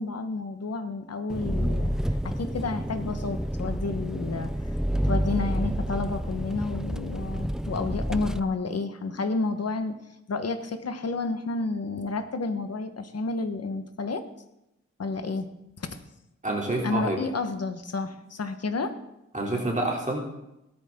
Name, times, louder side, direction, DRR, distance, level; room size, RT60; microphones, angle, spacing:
voice 1, 0.0-1.9 2.2-4.5 5.0-10.0 10.3-14.3 15.0-15.5 15.8-16.0 16.8-18.9, left 3 dB, 60° left, 8 dB, 1.3 m, -30 dB
Engine, 1.3-8.4, equal, ahead, 0.4 m, -29 dB
voice 2, 16.4-17.2 19.3-20.2, right 2 dB, 25° right, -2 dB, 3.2 m, -27 dB
17.5 x 13.0 x 3.8 m, 0.88 s
wide cardioid pair, 130°, 29 cm